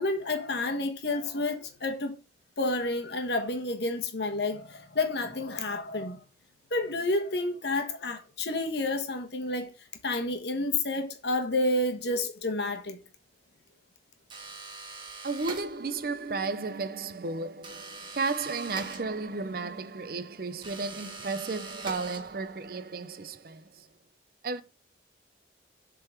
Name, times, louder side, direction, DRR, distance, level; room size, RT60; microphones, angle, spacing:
voice 1, 0.0-2.1 2.6-6.2 6.7-9.7 10.0-13.0, left 2 dB, 70° left, 1.3 m, -30 dB
sound 1, 14.3-16.1 17.6-19.5 20.6-22.6, right 3 dB, 25° right, 1.4 m, -43 dB
voice 2, 15.2-23.9 24.4-24.6, right 4 dB, 55° right, 0.6 m, -33 dB
7.7 x 3.9 x 4.4 m
head